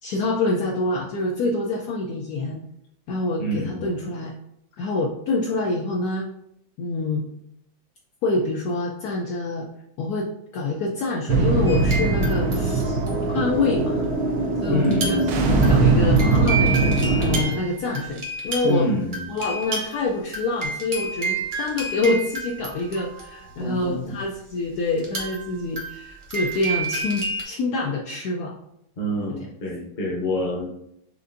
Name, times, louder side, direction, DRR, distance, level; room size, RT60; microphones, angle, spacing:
voice 1, 0.0-2.6 3.1-4.3 4.8-6.3 6.8-7.2 8.2-9.7 10.0-13.0 13.3-14.0 14.6-18.9 19.3-28.6 29.4-29.5, left 2 dB, 85° left, -1 dB, 0.8 m, -26 dB
voice 2, 3.4-3.8 14.7-15.2 18.6-19.2 23.6-23.9 29.0-30.6, equal, 40° left, -1 dB, 0.6 m, -26 dB
sound 1, 11.3-17.4, right 3 dB, 80° right, 0.8 m, -21 dB
sound 2, 11.7-12.5 12.8-13.6 14.8-15.3 15.6-23.6 25.0-27.4, right 3 dB, 45° right, 0.6 m, -30 dB
6.4 x 2.5 x 2.5 m, 0.76 s
omnidirectional pair, 2.2 m